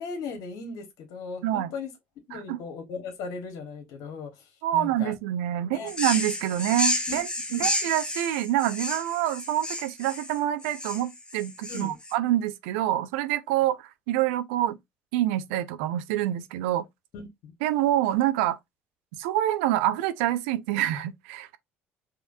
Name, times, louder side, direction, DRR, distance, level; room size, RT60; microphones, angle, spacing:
voice 1, 0.0-1.9 2.3-5.1 5.7-5.9 7.1-7.2 7.5-7.7 11.7-11.9 17.1-17.5, left 4 dB, 60° left, 1.3 m, -37 dB
voice 2, 4.6-14.8 15.1-16.8 17.6-18.6 19.2-21.6, right 13 dB, 65° right, 0.5 m, -26 dB
sound 1, 5.9-12.1, left 1 dB, 15° left, 1.2 m, -31 dB
4.9 x 2.9 x 2.6 m
figure-of-eight pair, 55°, 7 cm